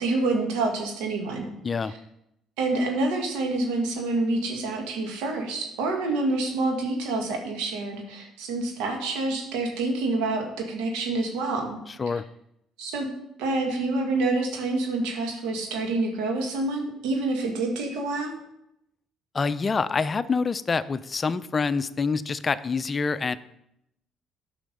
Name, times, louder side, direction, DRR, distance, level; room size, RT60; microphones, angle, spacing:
voice 1, 0.0-1.5 1.8-2.0 2.6-11.8 12.8-13.1 13.4-18.4, right 2 dB, 80° right, 2 dB, 2.0 m, -27 dB
voice 2, 19.3-23.4, left 4 dB, 35° left, 15 dB, 0.5 m, -26 dB
10.0 x 5.7 x 5.4 m, 0.81 s
supercardioid pair, 70°, 0 cm